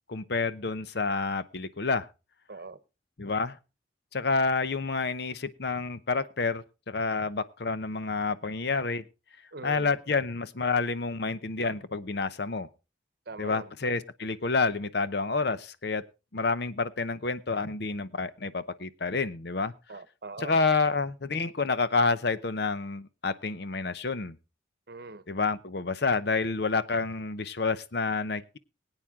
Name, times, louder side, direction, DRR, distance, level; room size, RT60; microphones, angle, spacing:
voice 1, 0.1-2.1 3.2-3.6 4.1-9.0 9.6-12.7 13.4-16.0 16.3-19.7 20.4-24.4 25.3-28.6, left 4 dB, 60° left, 0.7 m, -29 dB
voice 2, 2.5-2.8 9.5-9.9 13.3-13.7 19.9-20.6 24.9-25.2, right 3 dB, 55° right, 0.9 m, -41 dB
21.5 x 9.0 x 3.6 m
head